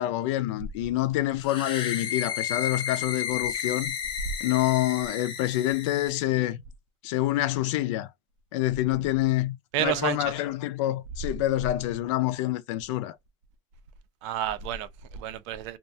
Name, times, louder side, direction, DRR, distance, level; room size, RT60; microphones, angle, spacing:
voice 1, 0.0-4.0 4.4-6.6 7.0-8.1 8.5-13.2, left 15 dB, 70° left, 0.4 m, -27 dB
sound 1, 1.4-6.2, left 8 dB, 30° left, 0.6 m, -32 dB
voice 2, 9.7-10.3 14.2-15.8, right 12 dB, 65° right, 0.5 m, -30 dB
2.4 x 2.2 x 2.6 m
supercardioid pair, 155°, 16 cm